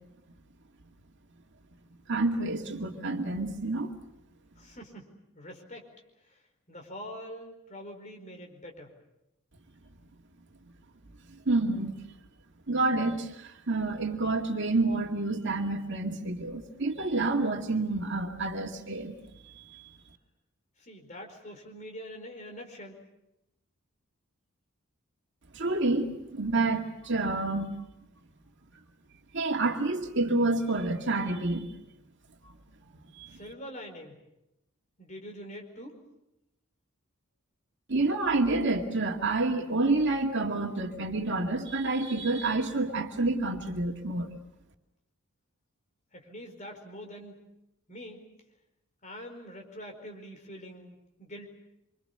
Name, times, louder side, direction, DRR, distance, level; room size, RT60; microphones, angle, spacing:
voice 1, 2.1-3.9 11.3-12.0 12.7-19.2 19.4-20.0 25.5-27.7 29.3-31.7 33.2-33.4 37.9-44.3, right 2 dB, 55° right, 3 dB, 2.2 m, -28 dB
voice 2, 4.6-5.0 5.3-5.9 6.3-6.4 6.7-8.9 20.8-23.0 33.3-34.2 35.0-36.0 46.1-47.4 47.9-48.2 49.0-51.5, equal, 35° left, 3 dB, 4.8 m, -44 dB
27.0 x 25.0 x 6.8 m, 0.89 s
head